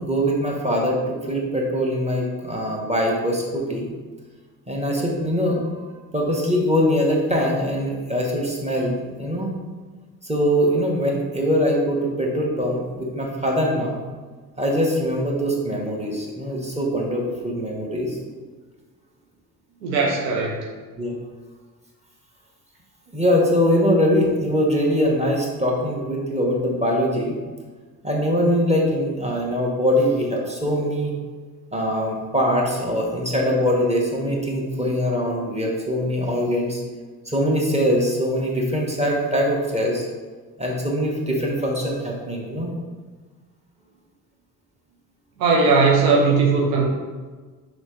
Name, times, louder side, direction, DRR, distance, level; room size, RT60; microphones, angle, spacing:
voice 1, 0.0-3.9 4.7-5.9 6.1-9.5 10.2-14.0 14.6-18.2 21.0-21.2 23.1-27.4 28.0-31.1 31.7-36.8 37.2-40.1 40.6-42.7, equal, 15° right, -2 dB, 1.7 m, -22 dB
voice 2, 19.8-20.6 45.4-46.9, right 4 dB, 80° right, -2 dB, 1.0 m, -18 dB
6.1 x 3.2 x 5.1 m, 1.4 s
figure-of-eight pair, 40°, 49 cm